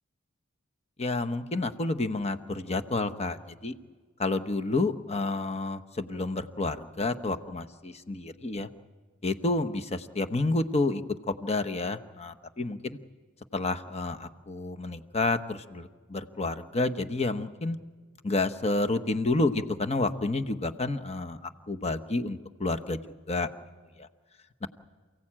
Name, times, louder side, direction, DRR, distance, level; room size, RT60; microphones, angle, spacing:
voice 1, 1.0-3.7 4.2-8.7 9.2-12.8 13.5-17.8 18.2-21.4 21.7-23.0 23.3-23.5 24.0-24.1 24.6-24.7, left 2 dB, 30° left, 8 dB, 1.1 m, -29 dB
28.5 x 16.5 x 8.8 m, 1.5 s
head